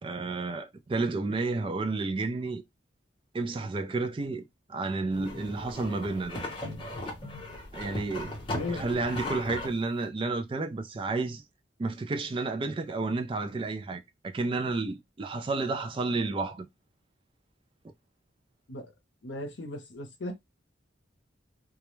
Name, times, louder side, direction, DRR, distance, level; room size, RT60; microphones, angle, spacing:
voice 1, 0.0-2.6 3.3-6.4 7.7-8.3 8.7-11.4 11.8-16.7, right 3 dB, 30° right, 0.3 m, -31 dB
sound 1, 5.1-9.7, left 1 dB, 25° left, 0.8 m, -37 dB
voice 2, 8.5-8.8 18.7-18.9 19.2-20.3, left 2 dB, 70° left, 0.7 m, -36 dB
2.3 x 2.1 x 3.0 m
head